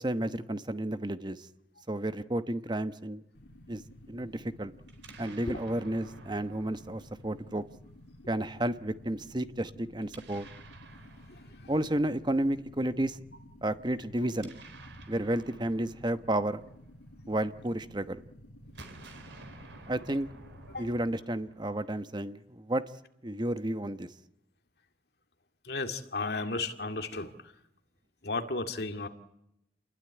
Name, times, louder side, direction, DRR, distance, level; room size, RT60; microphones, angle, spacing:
voice 1, 0.0-1.5 1.9-3.2 3.7-3.8 4.1-4.7 5.2-7.6 8.3-10.5 11.7-13.2 13.6-14.5 15.1-16.6 17.3-18.2 19.9-20.3 20.8-22.8 23.2-24.1, right 1 dB, 25° right, 11 dB, 1.0 m, -31 dB
sound 1, 3.3-20.8, left 1 dB, 80° left, 3.3 m, -53 dB
Explosion, 4.9-7.9 10.0-12.2 14.1-17.5 18.6-22.0, right 2 dB, 80° right, 4.4 m, -53 dB
voice 2, 25.7-27.3 28.2-29.1, left 3 dB, 60° left, 7 dB, 2.2 m, -33 dB
28.5 x 21.0 x 9.8 m, 0.85 s
head